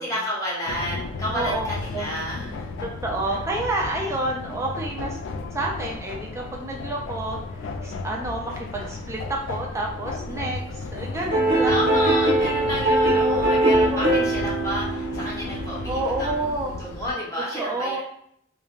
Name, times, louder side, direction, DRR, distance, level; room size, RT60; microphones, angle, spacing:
voice 1, 0.0-2.7 11.7-18.0, equal, 20° left, -6 dB, 0.9 m, -31 dB
sound 1, 0.7-17.1, left 3 dB, 75° left, 0.3 m, -34 dB
voice 2, 1.3-2.1 2.8-5.2 5.5-7.4 7.8-11.9 13.2-13.4 13.7-14.3 15.9-16.8 17.6-18.0, right 2 dB, 15° right, -1 dB, 0.3 m, -29 dB
sound 2, 11.3-16.3, right 1 dB, 45° right, 1.1 m, -22 dB
3.1 x 2.0 x 2.4 m, 0.68 s
head